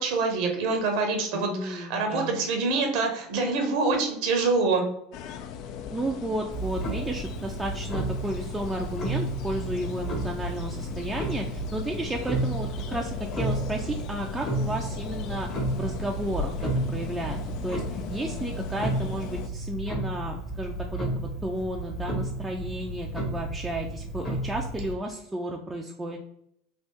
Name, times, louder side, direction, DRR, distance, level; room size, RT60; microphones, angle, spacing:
voice 1, 0.0-4.8, right 3 dB, 60° right, 4 dB, 0.7 m, -25 dB
voice 2, 1.3-2.5 5.9-17.4 17.6-26.2, right 1 dB, 10° right, 0 dB, 0.4 m, -33 dB
sound 1, 5.1-19.5, left 7 dB, 55° left, 0.4 m, -39 dB
Clock, 6.5-24.9, right 2 dB, 35° left, 1.3 m, -32 dB
3.3 x 2.6 x 3.0 m, 0.74 s
figure-of-eight pair, 80°, 0 cm